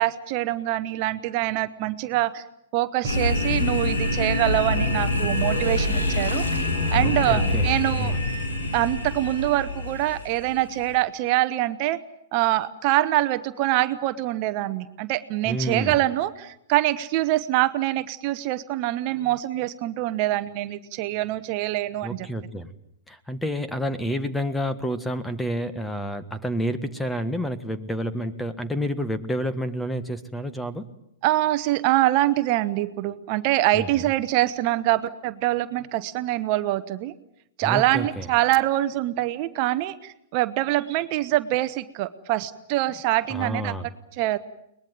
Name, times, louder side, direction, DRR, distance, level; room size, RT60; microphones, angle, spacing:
voice 1, 0.0-2.4 2.7-6.4 6.9-8.1 8.7-12.0 12.3-22.3 31.2-37.1 37.6-43.7 44.2-44.4, right 15 dB, 45° right, 13 dB, 1.0 m, -24 dB
sound 1, 3.0-10.9, left 2 dB, 85° left, 5.8 m, -25 dB
voice 2, 7.0-7.7 8.0-8.2 15.4-16.0 22.0-22.7 23.1-30.9 33.7-33.9 37.6-38.3 43.3-43.9, equal, 5° left, 12 dB, 1.6 m, -29 dB
22.5 x 20.5 x 9.3 m, 0.78 s
hypercardioid pair, 115°, 0 cm